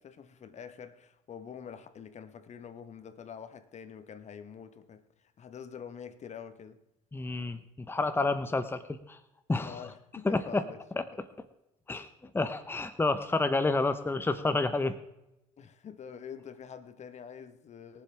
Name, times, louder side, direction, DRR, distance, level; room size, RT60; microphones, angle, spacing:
voice 1, 0.0-6.8 9.6-11.2 15.6-18.0, left 7 dB, 45° left, 1.3 m, -46 dB
voice 2, 7.1-9.2 9.5-9.9 10.2-10.6 11.9-12.1 12.3-14.9, left 3 dB, 15° left, 1.0 m, -29 dB
22.5 x 7.7 x 3.5 m
hypercardioid pair, 65°, 16 cm